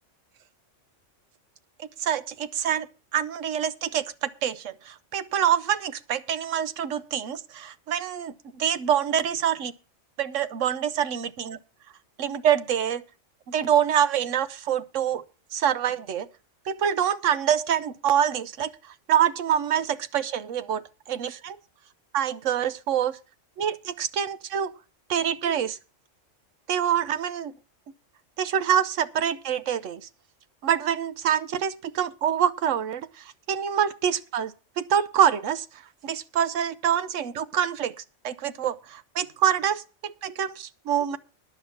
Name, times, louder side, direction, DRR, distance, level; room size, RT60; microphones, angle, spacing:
voice 1, 1.8-2.9 3.1-9.7 10.2-11.6 12.2-13.0 13.5-15.2 15.5-16.3 16.7-18.7 19.1-21.6 22.1-23.2 23.6-24.7 25.1-25.8 26.7-27.5 28.4-30.0 30.6-35.7 36.0-37.9 38.2-41.2, right 9 dB, 75° right, 1.1 m, -26 dB
10.5 x 7.3 x 6.8 m
omnidirectional pair, 1.3 m